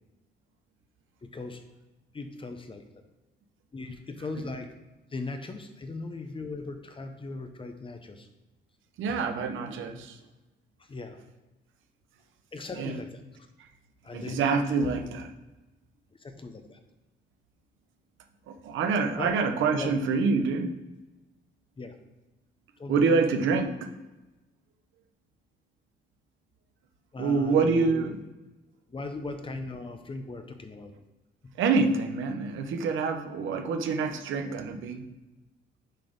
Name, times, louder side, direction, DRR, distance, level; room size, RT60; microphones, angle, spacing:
voice 1, 1.2-1.6 2.1-2.8 3.7-4.7 5.1-8.3 10.8-11.2 12.5-13.2 14.0-14.4 14.8-14.9 16.1-16.8 19.2-19.4 19.7-20.0 21.8-22.0 22.8-23.2 27.1-28.2 28.9-30.9 31.4-31.5, left 3 dB, 25° left, 7 dB, 0.8 m, -38 dB
voice 2, 9.0-10.2 12.8-12.9 14.1-15.2 18.5-20.8 22.9-23.7 27.2-28.2 31.6-35.0, right 4 dB, 80° right, 5 dB, 0.9 m, -26 dB
6.4 x 4.2 x 5.2 m, 1.1 s
cardioid pair, 90°, 20 cm